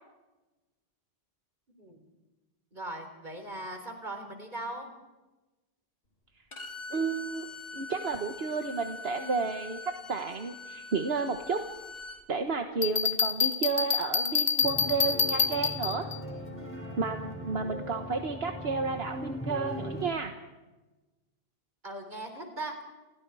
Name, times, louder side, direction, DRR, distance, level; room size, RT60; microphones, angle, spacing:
voice 1, 2.7-4.9 21.8-22.8, right 2 dB, 50° right, 5 dB, 4.2 m, -39 dB
Bowed string instrument, 6.5-12.2, left 3 dB, 65° left, 2.4 m, -43 dB
voice 2, 6.9-7.5 7.7-11.6 12.3-16.1 17.0-20.3, right 4 dB, 75° right, 5 dB, 1.6 m, -31 dB
Bell, 12.8-16.2, left 6 dB, 45° left, 1.0 m, -27 dB
sound 1, 14.6-20.1, equal, 10° left, 5.2 m, -39 dB
29.0 x 28.5 x 4.9 m, 1.2 s
omnidirectional pair, 1.0 m